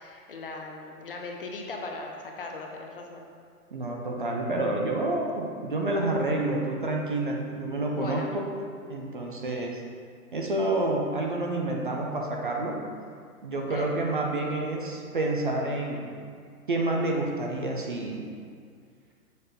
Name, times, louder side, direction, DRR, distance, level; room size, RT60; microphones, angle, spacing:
voice 1, 0.0-3.3 8.0-8.3 13.7-14.0, left 3 dB, 40° left, 1 dB, 0.6 m, -38 dB
voice 2, 3.7-8.2 8.9-9.8 10.3-12.8 13.4-16.1 16.7-18.2, right 2 dB, 35° right, 0 dB, 0.5 m, -28 dB
6.7 x 3.4 x 5.6 m, 2.1 s
hypercardioid pair, 170°, 45 cm